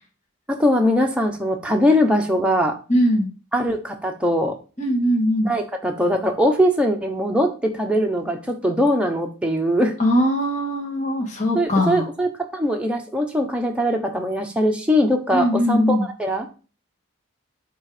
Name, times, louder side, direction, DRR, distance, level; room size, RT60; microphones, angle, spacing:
voice 1, 0.5-2.8 3.5-4.6 5.4-9.9 11.5-16.5, equal, 5° right, 2 dB, 1.0 m, -21 dB
voice 2, 2.9-3.3 4.8-5.5 10.0-12.1 15.3-16.0, equal, 35° left, 0 dB, 1.8 m, -20 dB
9.6 x 3.8 x 5.0 m, 0.35 s
head